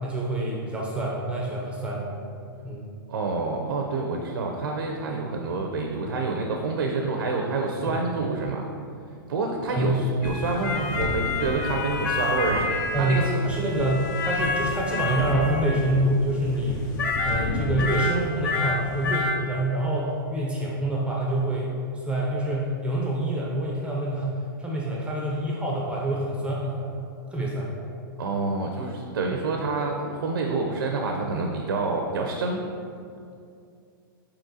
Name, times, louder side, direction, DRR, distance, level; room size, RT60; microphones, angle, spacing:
voice 1, 0.0-2.1 2.6-2.9 7.9-8.0 9.7-10.1 12.9-16.9 17.2-21.7 22.0-26.9 27.3-27.7, right 1 dB, 10° right, -3 dB, 0.5 m, -26 dB
voice 2, 3.1-8.7 9.3-12.7 13.0-13.4 28.2-32.6, right 3 dB, 80° right, 1 dB, 0.5 m, -28 dB
sound 1, 10.2-19.3, left 3 dB, 55° left, 0.6 m, -28 dB
4.3 x 3.7 x 2.7 m, 2.4 s
hypercardioid pair, 125°, 12 cm